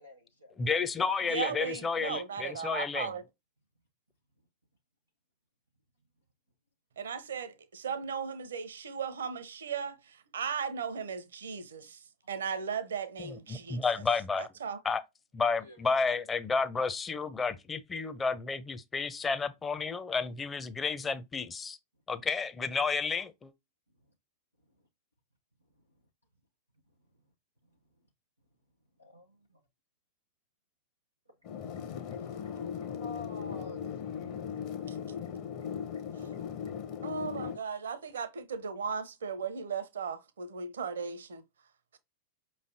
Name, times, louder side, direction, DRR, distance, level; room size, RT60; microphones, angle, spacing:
voice 1, 0.0-0.7 15.6-16.2 29.0-29.6 31.8-34.8 37.4-37.5, left 2 dB, 90° left, 0.8 m, -50 dB
voice 2, 0.6-3.1 13.2-14.5 14.8-15.0 15.3-21.8 22.1-23.5, left 4 dB, 15° left, 0.6 m, -31 dB
voice 3, 1.3-3.2 7.0-12.0 12.3-14.0 14.4-14.8 34.9-35.0 36.1-36.4 37.0-41.4, right 6 dB, 65° right, 0.6 m, -37 dB
sound 1, 31.4-37.6, left 7 dB, 45° left, 0.8 m, -38 dB
5.2 x 3.2 x 2.7 m
figure-of-eight pair, 90°, 0 cm